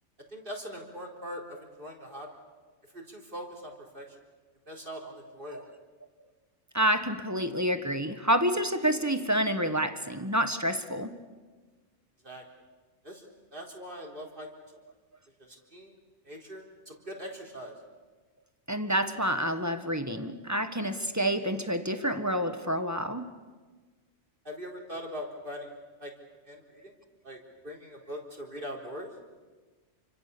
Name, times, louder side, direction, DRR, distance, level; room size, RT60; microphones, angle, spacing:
voice 1, 0.3-2.3 2.9-4.1 4.7-5.6 12.2-12.4 13.0-14.5 15.7-15.9 16.3-17.7 24.4-25.7 26.0-26.1 26.5-26.9 27.2-27.4 27.6-29.1, equal, 45° right, 1 dB, 4.2 m, -41 dB
voice 2, 6.7-11.1 18.7-23.3, equal, 15° right, 8 dB, 1.5 m, -28 dB
29.5 x 25.5 x 7.0 m, 1.4 s
omnidirectional pair, 1.2 m